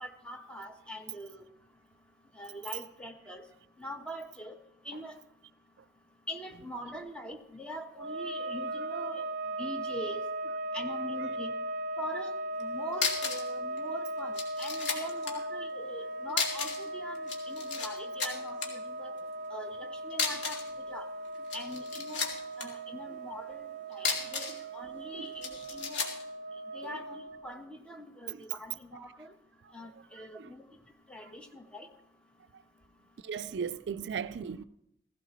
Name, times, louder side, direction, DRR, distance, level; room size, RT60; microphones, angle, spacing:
voice 1, 0.0-1.4 2.4-3.4 3.8-4.5 4.9-5.1 6.3-9.2 9.6-10.2 10.7-11.5 12.0-12.3 12.6-18.6 19.0-19.1 19.5-20.6 20.9-21.1 21.5-22.3 22.6-24.5 24.7-26.0 26.7-29.3 29.7-30.6 31.1-31.9, equal, 5° left, 1.1 m, -43 dB
sound 1, 7.9-27.6, right 1 dB, 45° right, 0.8 m, -38 dB
sound 2, 12.6-12.7 12.9-13.5 13.8-13.9 14.3-15.4 16.3-16.9 17.2-17.9 18.2-18.7 20.1-20.7 21.3-22.7 23.9-24.6 25.4-26.2, left 5 dB, 85° left, 2.3 m, -33 dB
voice 2, 30.1-30.5 31.2-31.3 33.2-34.6, right 7 dB, 75° right, 0.4 m, -37 dB
16.0 x 16.0 x 3.1 m
head